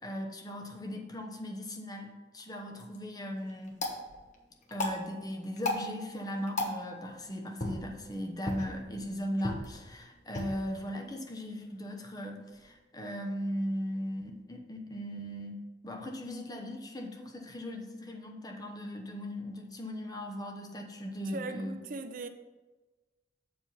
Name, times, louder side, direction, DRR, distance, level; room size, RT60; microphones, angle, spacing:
voice 1, 0.0-3.8 4.7-15.6 15.8-21.8, equal, 20° left, 0.9 m, -38 dB
sound 1, 2.6-12.7, left 2 dB, 45° left, 1.2 m, -40 dB
voice 2, 21.3-22.3, right 3 dB, 50° right, 0.4 m, -39 dB
7.4 x 4.8 x 5.5 m
head